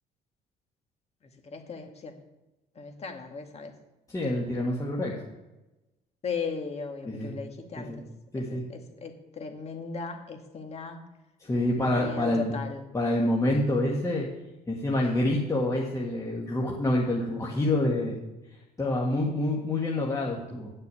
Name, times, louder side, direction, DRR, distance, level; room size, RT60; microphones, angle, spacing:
voice 1, 1.4-2.1 2.8-3.7 6.2-7.9 8.4-11.0 11.7-12.8, left 5 dB, 40° left, 4 dB, 2.0 m, -37 dB
voice 2, 4.1-5.1 7.1-7.3 7.8-8.0 8.3-8.6 11.4-12.6 12.9-14.3 14.7-18.2 18.8-20.7, left 1 dB, 20° left, -3 dB, 2.0 m, -27 dB
9.5 x 6.5 x 8.6 m, 1.0 s
cardioid pair, 110°, 17 cm